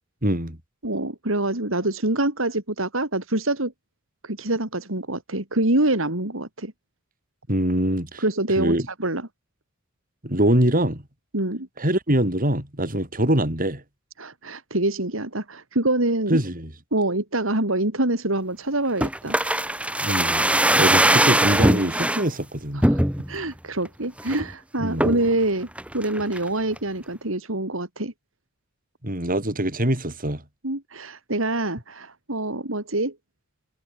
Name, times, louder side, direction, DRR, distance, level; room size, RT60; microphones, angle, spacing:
voice 1, 0.2-0.6 7.5-8.2 8.6-8.9 10.2-11.0 11.8-13.8 16.3-16.7 20.0-20.4 20.8-22.9 24.8-25.1 29.0-30.4, right 1 dB, 45° right, 7.4 m, -23 dB
voice 2, 0.8-3.7 4.2-6.7 8.2-8.7 9.0-9.2 11.3-11.7 14.2-16.4 16.9-19.4 22.7-23.0 23.3-25.7 25.9-28.1 30.6-33.1, right 2 dB, 70° right, 4.0 m, -25 dB
sound 1, 19.0-22.3 22.8-23.4 23.9-24.0 24.2-24.5 25.0-25.3 25.8-26.5 26.8-26.9, right 1 dB, 5° right, 4.8 m, -21 dB
head